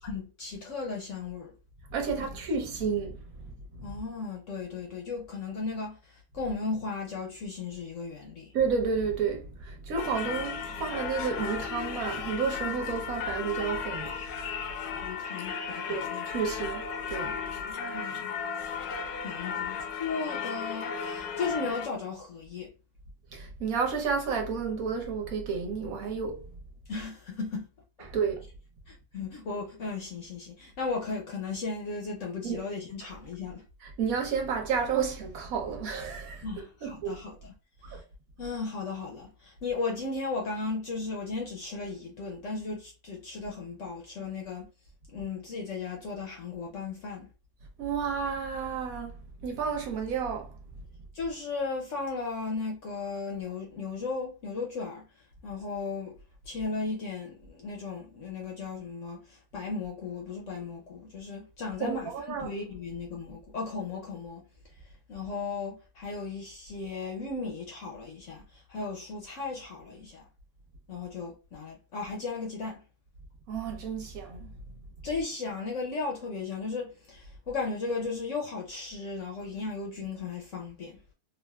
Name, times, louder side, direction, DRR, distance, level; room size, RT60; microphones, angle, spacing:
voice 1, 0.0-1.5 2.2-2.3 3.8-8.5 15.0-16.2 17.6-18.3 19.2-22.7 26.9-27.7 28.0-28.1 28.9-33.6 36.4-37.5 37.8-38.0 38.4-44.7 45.1-47.3 51.1-55.1 55.4-56.2 56.5-64.4 65.1-70.3 70.9-72.8 75.0-81.0, left 4 dB, 60° left, 0.9 m, -36 dB
voice 2, 1.9-3.2 8.5-14.1 15.9-17.3 23.3-26.4 28.0-28.4 32.4-32.7 33.0-33.1 33.8-36.5 36.8-37.2 37.9-38.0 47.8-49.1 49.4-50.5 61.8-62.5 73.5-74.5, right 6 dB, 65° right, 1.2 m, -31 dB
Singing / Church bell, 10.0-21.9, left 6 dB, 85° left, 1.1 m, -35 dB
3.3 x 2.4 x 2.3 m
omnidirectional pair, 1.6 m